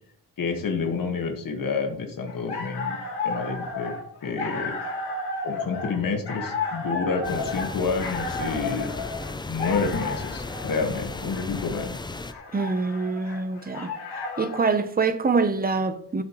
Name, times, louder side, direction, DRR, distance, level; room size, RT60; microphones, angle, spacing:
voice 1, 0.4-3.0 3.2-3.9 4.2-4.8 5.4-8.9 9.5-12.0, left 4 dB, 55° left, 1.5 m, -29 dB
sound 1, 2.3-14.7, left 3 dB, 80° left, 2.4 m, -33 dB
sound 2, 7.2-12.3, left 3 dB, 15° left, 0.3 m, -35 dB
voice 2, 12.5-13.9 14.4-16.2, right 4 dB, 25° right, 0.6 m, -25 dB
12.0 x 7.6 x 3.0 m
wide cardioid pair, 175°, 39 cm